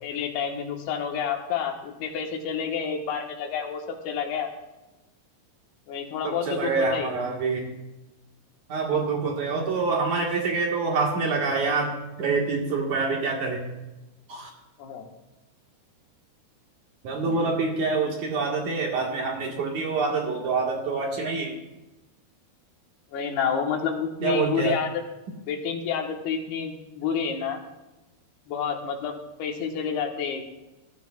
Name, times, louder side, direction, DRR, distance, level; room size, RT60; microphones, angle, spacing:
voice 1, 0.0-4.5 5.9-7.1 14.8-15.1 17.3-17.5 23.1-24.9 25.5-27.6 28.5-30.4, left 7 dB, 75° left, 3 dB, 3.2 m, -29 dB
voice 2, 6.2-7.7 8.7-13.6 14.3-14.5 17.0-21.6 24.2-24.8, right 4 dB, 55° right, 0 dB, 2.6 m, -26 dB
20.0 x 13.0 x 2.3 m, 1.0 s
omnidirectional pair, 4.7 m